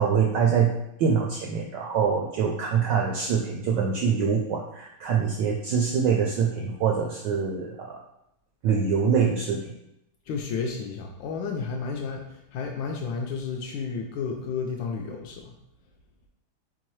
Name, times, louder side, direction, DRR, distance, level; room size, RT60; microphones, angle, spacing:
voice 1, 0.0-8.0 8.6-9.7, right 6 dB, 80° right, 0 dB, 1.0 m, -24 dB
voice 2, 10.3-15.5, left 5 dB, 75° left, 1 dB, 1.1 m, -32 dB
4.5 x 3.7 x 3.1 m, 0.83 s
omnidirectional pair, 2.4 m